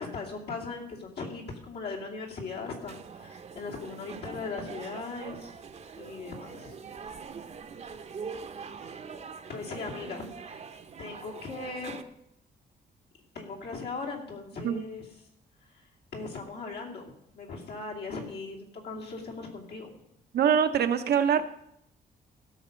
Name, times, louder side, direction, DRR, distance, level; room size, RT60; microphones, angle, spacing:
voice 1, 0.0-5.5 6.0-6.8 9.5-12.0 13.3-15.0 15.7-15.8 16.1-20.0, left 4 dB, 75° left, -2 dB, 2.8 m, -39 dB
sound 1, 2.9-12.0, right 6 dB, 40° right, 0.8 m, -43 dB
voice 2, 20.3-21.4, right 8 dB, 75° right, 8 dB, 0.9 m, -23 dB
16.0 x 6.7 x 5.2 m, 0.77 s
cardioid pair, 110°, 17 cm